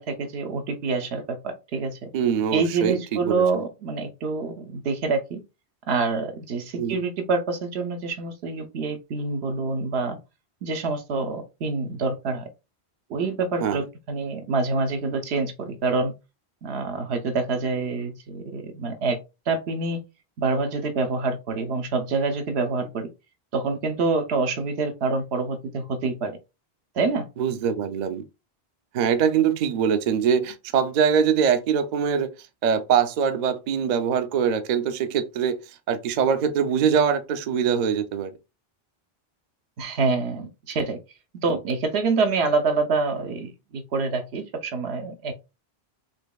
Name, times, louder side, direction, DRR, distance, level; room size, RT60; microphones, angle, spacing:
voice 1, 0.0-2.1 2.5-5.4 5.9-10.2 10.6-12.5 13.1-16.1 16.6-19.2 19.5-20.0 20.4-23.1 23.5-26.3 26.9-27.3 39.8-41.0 41.4-45.3, right 4 dB, 85° right, 1.0 m, -26 dB
voice 2, 2.1-3.4 6.8-7.0 13.6-13.8 27.4-28.2 28.9-32.3 32.6-35.6 35.9-38.3, right 7 dB, 55° right, 0.5 m, -23 dB
4.4 x 2.9 x 2.3 m
omnidirectional pair, 1.1 m